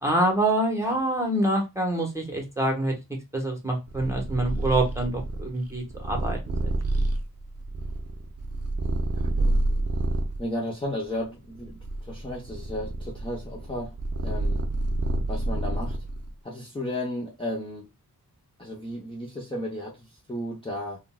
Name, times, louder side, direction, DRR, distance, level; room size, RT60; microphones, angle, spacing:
voice 1, 0.0-2.9 3.3-6.7, right 1 dB, 10° right, 1.1 m, -26 dB
Purr, 3.9-10.4 11.1-16.3, right 2 dB, 45° right, 0.6 m, -28 dB
voice 2, 9.2-9.8 10.4-13.9 14.2-14.6 15.3-16.0 16.4-17.9 18.6-21.0, left 1 dB, 15° left, 0.8 m, -34 dB
3.7 x 2.3 x 2.2 m
wide cardioid pair, 70°, 37 cm